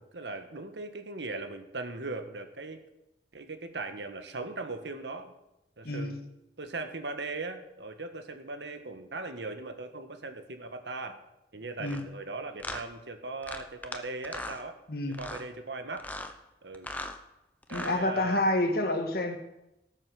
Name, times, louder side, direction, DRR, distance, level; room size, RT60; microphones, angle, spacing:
voice 1, 0.1-2.8 3.3-5.3 5.8-6.2 6.6-11.1 11.5-14.8 15.2-16.1 16.6-16.9 17.7-18.4, right 3 dB, 80° right, 7 dB, 1.5 m, -39 dB
voice 2, 5.9-6.2 11.8-12.1 14.9-15.2 17.7-19.4, left 1 dB, 60° left, 6 dB, 1.7 m, -28 dB
sound 1, 11.8-12.0 12.6-12.8 13.4-14.0 14.2-14.6 15.1-15.4 16.0-16.3 16.7-17.2 17.6-18.0, left 2 dB, 10° left, 0.8 m, -38 dB
18.0 x 7.5 x 6.3 m, 0.91 s
head